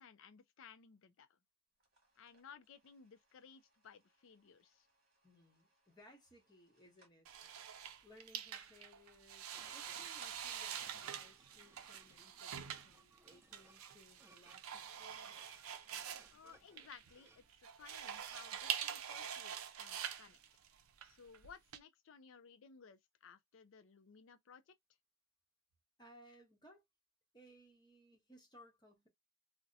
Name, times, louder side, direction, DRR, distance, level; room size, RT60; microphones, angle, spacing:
voice 1, 0.0-1.4 2.2-4.9 16.3-20.4 21.0-24.7, left 6 dB, 65° left, 0.4 m, -59 dB
sound 1, 1.7-12.1, right 3 dB, 45° right, 1.2 m, -70 dB
voice 2, 5.2-7.6 8.0-15.3 26.0-26.8 27.3-29.1, equal, 20° left, 0.9 m, -63 dB
sound 2, 7.2-21.8, right 9 dB, 90° right, 0.4 m, -45 dB
sound 3, 9.5-17.5, right 3 dB, 10° right, 0.3 m, -66 dB
2.7 x 2.1 x 2.5 m
head